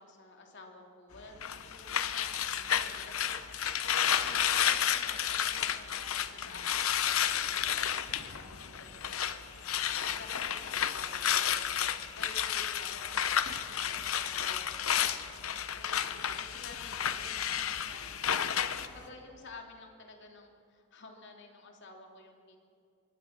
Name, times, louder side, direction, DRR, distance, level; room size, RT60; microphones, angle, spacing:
voice 1, 0.0-3.3 3.8-6.9 7.3-9.7 10.0-15.1 15.7-22.6, left 3 dB, 55° left, 2 dB, 3.1 m, -52 dB
sound 1, 1.1-19.1, left 2 dB, 90° left, 1.8 m, -53 dB
sound 2, 1.4-9.4 9.6-18.9, left 9 dB, 70° left, 1.0 m, -31 dB
24.5 x 23.5 x 6.0 m, 2.6 s
head